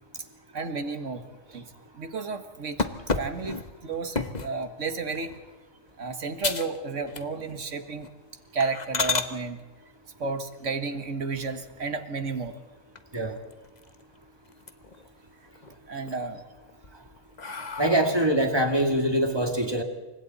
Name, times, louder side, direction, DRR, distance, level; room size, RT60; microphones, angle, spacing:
voice 1, 0.5-1.2 1.5-2.9 3.2-5.3 6.0-8.1 8.5-9.6 10.2-12.6 15.9-16.4 17.6-17.7, right 4 dB, 80° right, 8 dB, 2.0 m, -32 dB
sound 1, 2.8-4.6 5.2-5.5 5.9-6.0 6.4-6.8 7.1-7.6 8.0-8.1 8.6-9.3 11.3-12.0 12.5-12.6 13.0-13.1 13.3-14.1 14.5-15.1 15.5-16.1 16.7-18.4, left 4 dB, 35° left, 1.3 m, -32 dB
voice 2, 17.8-19.8, right 1 dB, 20° right, 5 dB, 2.2 m, -23 dB
28.5 x 25.0 x 4.2 m, 1.2 s
omnidirectional pair, 1.2 m